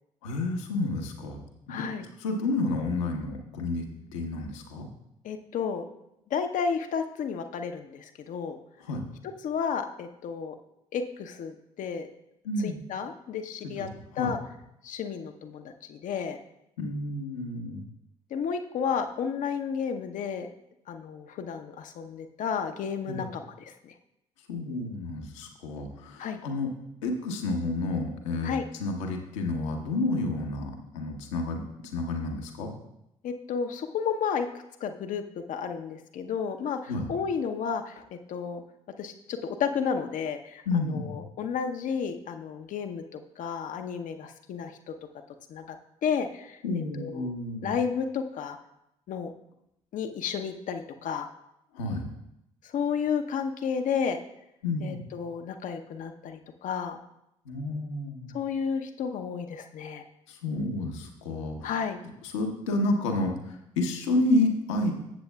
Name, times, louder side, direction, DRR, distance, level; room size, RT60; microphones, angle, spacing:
voice 1, 0.2-1.4 1.7-1.9 2.2-3.8 4.1-4.9 8.8-9.0 12.4-12.8 13.8-13.9 14.2-14.3 16.8-17.8 23.1-23.2 24.5-26.7 27.0-28.5 28.8-32.7 36.9-37.1 40.7-41.2 46.6-47.8 51.7-52.1 54.6-55.0 57.4-58.3 60.3-61.7 62.3-64.9, left 2 dB, 75° left, 2 dB, 1.1 m, -30 dB
voice 2, 1.7-2.1 5.2-5.8 6.3-8.6 9.4-10.5 10.9-12.1 12.6-13.9 14.2-14.4 14.8-16.4 18.3-20.5 20.9-23.9 26.2-26.4 28.4-28.6 33.2-34.5 34.8-35.2 35.5-38.6 39.0-44.9 45.5-45.8 46.0-46.6 47.0-47.3 47.6-48.6 49.1-49.3 49.9-51.3 52.6-54.2 54.8-57.0 58.3-60.0 61.6-62.0, left 6 dB, 55° left, 6 dB, 0.8 m, -32 dB
13.5 x 7.9 x 2.3 m, 0.82 s
figure-of-eight pair, 40°, 16 cm